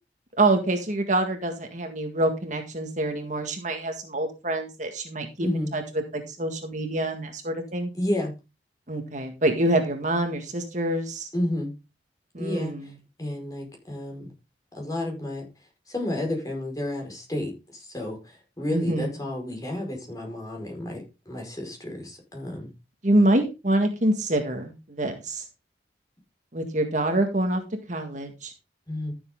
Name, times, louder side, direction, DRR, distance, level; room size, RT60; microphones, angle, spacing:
voice 1, 0.4-5.8 6.1-7.9 8.9-11.3 12.3-12.8 18.7-19.1 23.0-25.4 26.5-27.6 27.9-28.5, right 1 dB, 45° right, 5 dB, 1.8 m, -26 dB
voice 2, 5.4-5.7 7.9-8.3 11.3-11.7 12.4-12.9 13.2-14.3 14.7-15.5 15.9-22.7 28.9-29.1, left 1 dB, 20° left, 1 dB, 5.2 m, -31 dB
14.0 x 7.2 x 3.8 m, 0.27 s
head